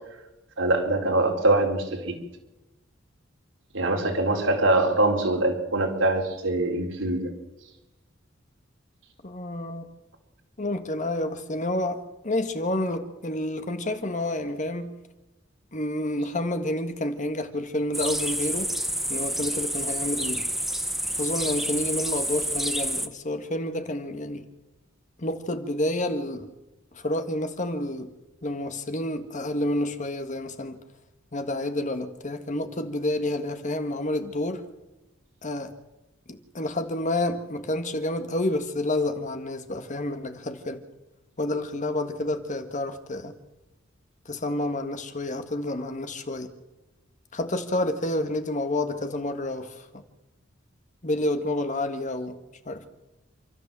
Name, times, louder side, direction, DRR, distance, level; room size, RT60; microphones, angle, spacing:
voice 1, 0.6-2.2 3.7-7.3, right 2 dB, 85° right, 2 dB, 4.3 m, -23 dB
voice 2, 9.2-9.9 10.6-14.9 15.7-18.7 19.1-20.5 21.2-24.4 25.2-26.5 26.9-28.1 28.4-30.8 31.3-34.6 35.4-35.7 36.3-40.8 41.4-43.4 44.3-46.5 47.3-49.9 51.0-52.4 52.7-52.9, left 1 dB, 40° left, 8 dB, 1.7 m, -29 dB
sound 1, 17.9-23.1, right 1 dB, ahead, 1.0 m, -29 dB
28.0 x 13.0 x 7.5 m, 1.0 s
head